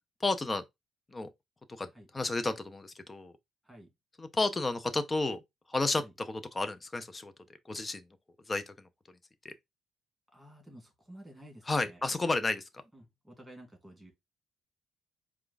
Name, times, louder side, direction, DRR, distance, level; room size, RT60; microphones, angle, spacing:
voice 1, 0.2-0.6 1.1-1.3 1.7-1.9 2.1-3.3 4.2-5.4 5.7-7.3 7.7-8.0 8.5-8.7 9.4-9.5 11.7-12.6, left 2 dB, 25° left, 0.7 m, -31 dB
voice 2, 10.3-12.1 12.9-14.1, right 1 dB, 5° right, 2.1 m, -52 dB
4.4 x 2.4 x 3.9 m
cardioid pair, 90°, 0 cm